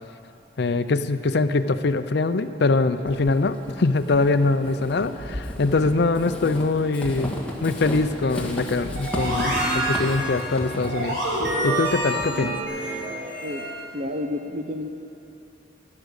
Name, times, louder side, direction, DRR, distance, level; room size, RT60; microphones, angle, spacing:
voice 1, 0.6-7.3 7.6-11.2 11.6-13.0, left 3 dB, 60° left, 10 dB, 0.5 m, -23 dB
Walk footsteps / Squeak, 3.1-12.6, equal, 5° left, 1.7 m, -34 dB
sound 1, 8.9-13.9, right 1 dB, 75° right, 4.1 m, -27 dB
voice 2, 13.9-14.9, left 1 dB, 45° right, 4 dB, 0.6 m, -30 dB
15.0 x 11.0 x 6.5 m, 2.8 s
head